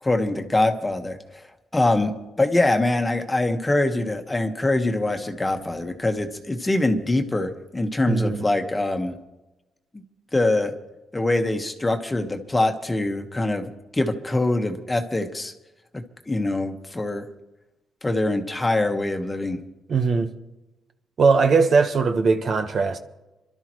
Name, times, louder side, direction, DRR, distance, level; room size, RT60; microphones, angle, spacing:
voice 1, 0.0-1.4 1.7-2.1 2.4-9.1 9.9-10.0 10.3-10.7 11.1-15.5 16.3-17.2 18.0-19.6, left 2 dB, 15° left, 1.5 m, -23 dB
voice 2, 8.0-8.5 19.9-20.3 21.2-23.0, right 4 dB, 50° right, 1.3 m, -20 dB
26.0 x 12.5 x 3.2 m
cardioid pair, 95°, 0 cm